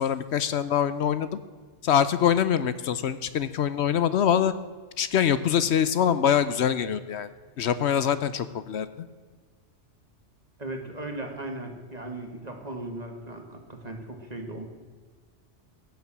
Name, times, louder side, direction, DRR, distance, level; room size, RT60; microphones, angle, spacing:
voice 1, 0.0-1.4 1.8-4.5 5.0-7.3 7.6-9.1, left 8 dB, 70° left, 14 dB, 0.9 m, -24 dB
voice 2, 10.6-14.7, right 2 dB, 35° right, 4 dB, 1.9 m, -37 dB
15.5 x 7.6 x 7.3 m, 1.5 s
omnidirectional pair, 1.2 m